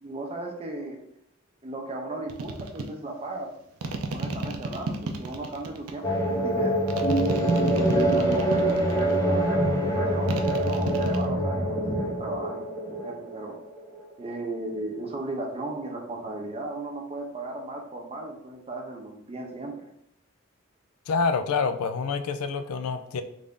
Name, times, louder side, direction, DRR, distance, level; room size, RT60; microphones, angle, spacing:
voice 1, 0.0-1.0 1.6-3.5 4.1-6.8 7.6-12.7 13.0-13.6 14.2-19.9, right 2 dB, 30° right, 2 dB, 0.6 m, -36 dB
sound 1, 2.3-2.9 3.8-6.0 6.9-9.2 10.3-11.3, right 3 dB, 80° right, 0.4 m, -32 dB
sound 2, 6.0-14.0, right 1 dB, 15° left, 0.6 m, -25 dB
voice 2, 21.1-23.2, left 5 dB, 90° left, 9 dB, 0.4 m, -27 dB
3.3 x 2.5 x 3.6 m, 0.75 s
head